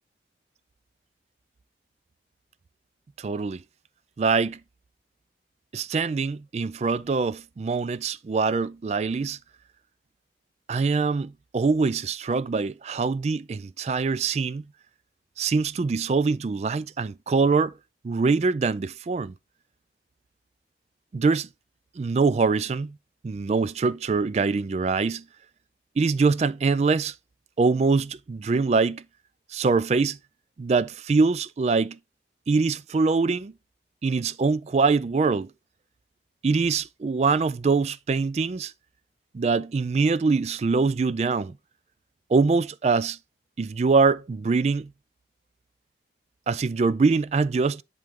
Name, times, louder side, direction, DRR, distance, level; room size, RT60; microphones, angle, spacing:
voice 1, 3.2-3.6 4.2-4.6 5.7-9.4 10.7-14.6 15.4-17.7 18.0-19.3 21.1-21.5 22.0-23.0 23.2-25.2 26.0-27.1 27.6-29.0 29.5-30.2 30.6-32.0 32.5-33.5 34.0-35.5 36.4-38.7 39.3-41.5 42.3-43.2 43.6-44.9 46.5-47.8, right 4 dB, 40° right, 0.3 m, -23 dB
10.5 x 3.8 x 3.6 m
head